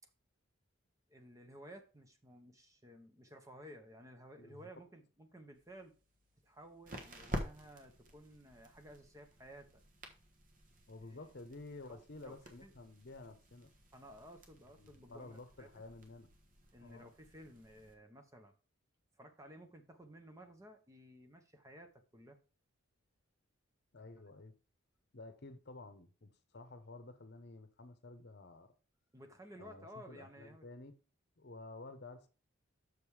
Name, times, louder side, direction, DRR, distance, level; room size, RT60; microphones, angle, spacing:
voice 1, 1.1-5.9 6.4-9.8 11.1-11.2 11.9-12.4 12.6-12.7 13.9-15.8 16.7-18.5 19.2-22.4 29.1-30.7, equal, 15° right, 0.9 m, -55 dB
voice 2, 4.4-4.7 10.9-13.7 14.7-16.3 16.8-17.1 23.9-24.5 25.1-28.7 29.6-30.9 31.4-32.3, left 2 dB, 50° left, 0.9 m, -52 dB
sound 1, 5.5-17.9, equal, 40° right, 1.3 m, -50 dB
6.6 x 5.3 x 4.8 m
head